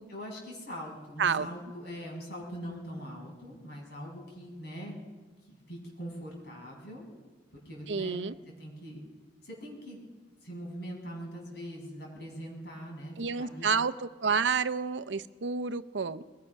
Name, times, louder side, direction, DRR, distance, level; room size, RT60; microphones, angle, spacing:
voice 1, 0.1-5.0 5.5-7.0 7.5-8.3 8.6-9.0 9.4-10.0 10.4-13.7, equal, 65° left, -2 dB, 6.7 m, -42 dB
voice 2, 7.9-8.4 13.2-16.2, right 5 dB, 80° right, 13 dB, 0.7 m, -29 dB
22.5 x 19.5 x 5.9 m, 1.4 s
head